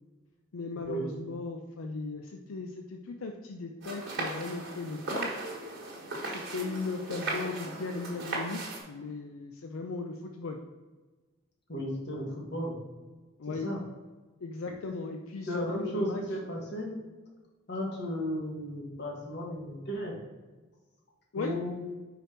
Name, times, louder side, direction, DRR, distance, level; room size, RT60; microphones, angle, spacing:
voice 1, 0.5-5.3 6.5-10.6 13.4-13.7 14.4-16.2 21.3-21.5, left 3 dB, 85° left, 4 dB, 0.5 m, -37 dB
sound 1, 3.8-8.8, right 2 dB, 55° right, 1.5 m, -37 dB
voice 2, 11.7-12.8 13.5-13.8 15.4-17.0 17.7-20.2 21.3-21.7, equal, 55° left, -1 dB, 1.5 m, -34 dB
5.0 x 4.7 x 4.4 m, 1.3 s
head